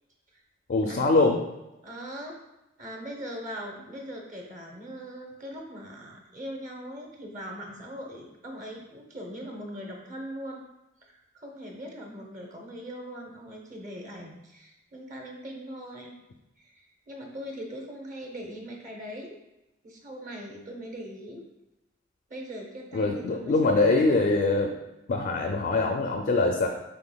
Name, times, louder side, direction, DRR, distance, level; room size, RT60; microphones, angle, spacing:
voice 1, 0.7-1.4 22.9-24.7 25.1-26.7, left 3 dB, 50° left, 2 dB, 0.4 m, -23 dB
voice 2, 1.8-2.4 2.8-10.7 11.0-16.2 16.6-19.3 19.8-21.4 22.3-24.2, equal, 45° right, 0 dB, 0.8 m, -40 dB
5.7 x 3.3 x 2.2 m, 0.97 s
head